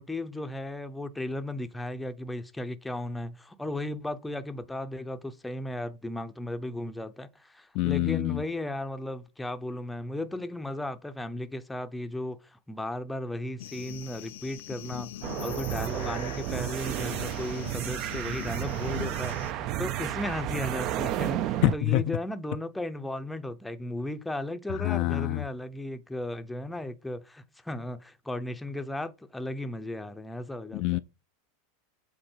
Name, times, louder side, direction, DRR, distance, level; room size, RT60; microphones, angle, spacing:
voice 1, 0.0-31.0, left 1 dB, 5° left, 0.6 m, -35 dB
voice 2, 7.8-8.4 21.6-22.0 24.8-25.4 30.7-31.0, left 17 dB, 50° left, 0.4 m, -25 dB
sound 1, 13.6-19.5, left 11 dB, 85° left, 0.7 m, -42 dB
sound 2, 15.2-21.8, right 13 dB, 40° right, 0.5 m, -32 dB
7.8 x 4.0 x 4.4 m
supercardioid pair, 150°, 0 cm